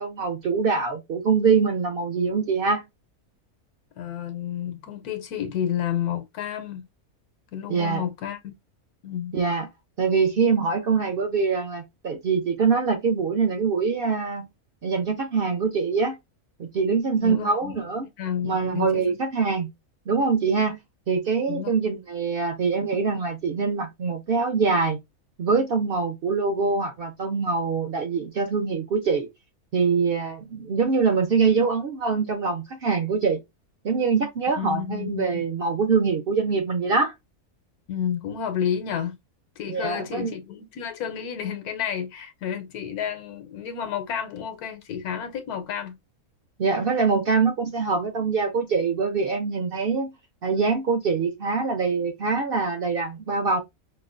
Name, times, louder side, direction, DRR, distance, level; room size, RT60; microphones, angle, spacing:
voice 1, 0.0-2.8 7.7-8.0 9.3-9.7 10.0-14.5 14.8-16.2 16.6-18.0 18.4-19.7 20.1-20.8 21.1-25.0 25.4-29.3 29.7-33.4 33.8-37.1 39.7-40.3 46.6-50.1 50.4-53.6, right 5 dB, 65° right, 0.5 m, -24 dB
voice 2, 4.0-6.9 7.5-8.6 9.0-9.4 17.1-17.8 18.2-19.2 21.5-21.7 34.6-35.5 37.9-39.2 39.6-46.0, left 8 dB, 90° left, 1.1 m, -31 dB
5.2 x 2.1 x 2.4 m
omnidirectional pair, 1.6 m